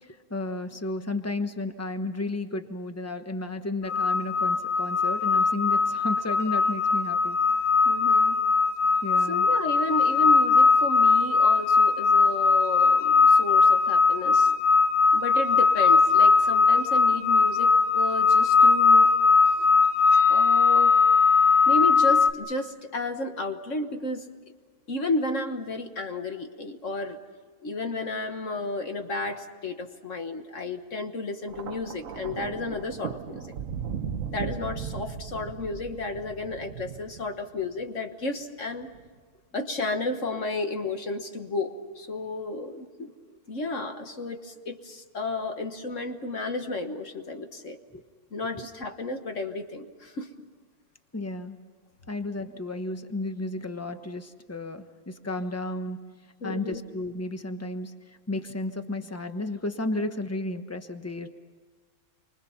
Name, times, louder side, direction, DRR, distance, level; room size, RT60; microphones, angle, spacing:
voice 1, 0.0-7.4 9.0-9.5 47.9-48.0 51.1-51.6 52.1-56.0 56.4-61.3, left 2 dB, 10° left, 7 dB, 0.7 m, -33 dB
sound 1, 3.9-22.3, left 4 dB, 60° left, 1.8 m, -20 dB
voice 2, 7.8-8.4 9.3-14.5 15.1-19.1 19.5-19.7 20.3-20.9 21.7-24.3 24.9-27.2 27.6-33.4 34.3-38.9 39.5-43.1 43.5-47.8 48.3-50.3 56.4-56.8, left 2 dB, 40° left, 6 dB, 1.5 m, -32 dB
Thunder, 31.5-37.8 38.8-39.1, right 7 dB, 50° right, 1.1 m, -37 dB
29.5 x 24.5 x 5.7 m, 1.5 s
omnidirectional pair, 2.3 m